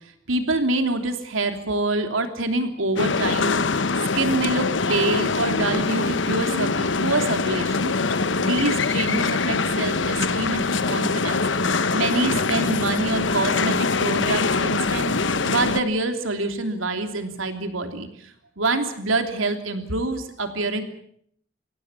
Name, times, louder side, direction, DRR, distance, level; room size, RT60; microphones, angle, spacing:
voice 1, 0.3-3.5 4.1-11.4 11.9-15.1 15.4-20.8, right 2 dB, 90° right, 6 dB, 3.3 m, -26 dB
sound 1, 3.0-15.8, left 4 dB, 65° left, 1.0 m, -23 dB
24.0 x 17.5 x 8.4 m, 0.66 s
head